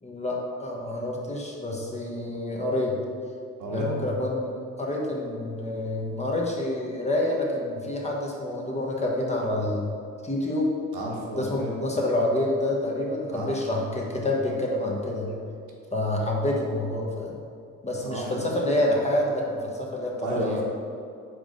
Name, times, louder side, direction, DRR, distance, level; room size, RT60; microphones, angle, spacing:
voice 1, 0.0-3.0 3.7-4.5 4.8-9.9 10.2-10.7 11.3-15.3 15.9-17.4 17.8-20.6, left 1 dB, 20° left, -2 dB, 1.1 m, -27 dB
voice 2, 3.6-3.9 10.9-11.9 13.3-13.9 18.0-18.6 20.2-20.6, right 1 dB, 85° right, -3 dB, 1.3 m, -32 dB
4.8 x 3.8 x 5.1 m, 2.4 s
cardioid pair, 90°, 30 cm